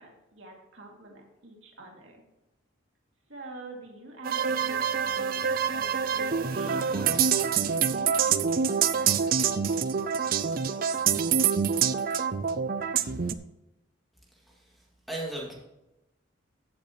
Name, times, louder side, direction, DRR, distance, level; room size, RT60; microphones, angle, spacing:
voice 1, 0.0-2.2 3.3-7.3 7.8-9.5, right 1 dB, 70° right, 0 dB, 2.5 m, -46 dB
sound 1, 4.2-13.3, right 7 dB, 45° right, 0.5 m, -26 dB
voice 2, 14.3-15.5, right 1 dB, ahead, -4 dB, 2.3 m, -38 dB
15.5 x 7.8 x 3.1 m, 0.94 s
head